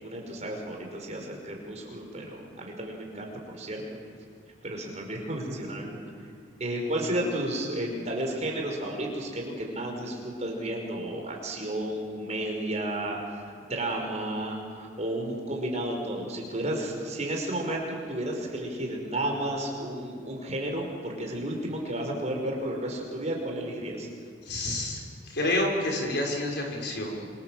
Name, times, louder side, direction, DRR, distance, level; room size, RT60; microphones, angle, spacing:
voice 1, 0.0-3.8 4.6-6.0 6.6-24.1, right 1 dB, 35° right, 1 dB, 5.4 m, -32 dB
voice 2, 24.4-25.0 25.2-27.4, left 1 dB, 60° left, 0 dB, 5.8 m, -29 dB
27.5 x 27.0 x 7.6 m, 2.1 s
head